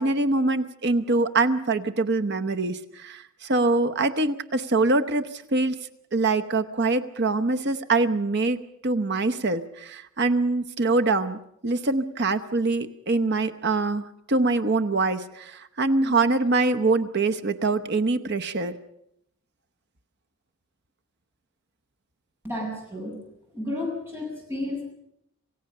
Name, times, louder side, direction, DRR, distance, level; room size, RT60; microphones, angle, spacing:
voice 1, 0.0-5.8 6.1-8.6 8.8-18.8, right 3 dB, 50° right, 8 dB, 0.9 m, -24 dB
voice 2, 22.4-23.2 23.5-24.8, left 1 dB, 10° right, -3 dB, 7.8 m, -32 dB
27.5 x 16.5 x 6.6 m, 0.76 s
head